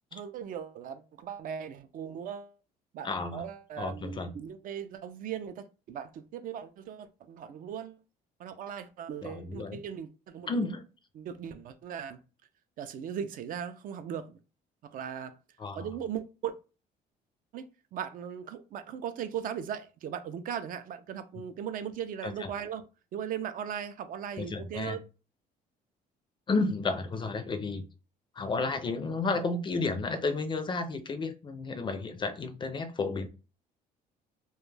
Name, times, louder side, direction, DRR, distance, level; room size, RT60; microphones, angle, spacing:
voice 1, 0.1-2.5 2.9-8.0 8.4-10.5 11.1-12.2 12.8-14.4 14.9-15.4 15.7-16.5 17.5-22.8 23.1-25.0, right 8 dB, 55° right, 0.4 m, -38 dB
voice 2, 3.0-3.5 3.8-4.3 9.2-9.8 10.5-10.8 15.6-15.8 22.2-22.5 24.4-25.0 26.5-27.8 28.4-33.3, left 3 dB, 30° left, 0.4 m, -32 dB
2.2 x 2.1 x 3.1 m
cardioid pair, 110°, 17 cm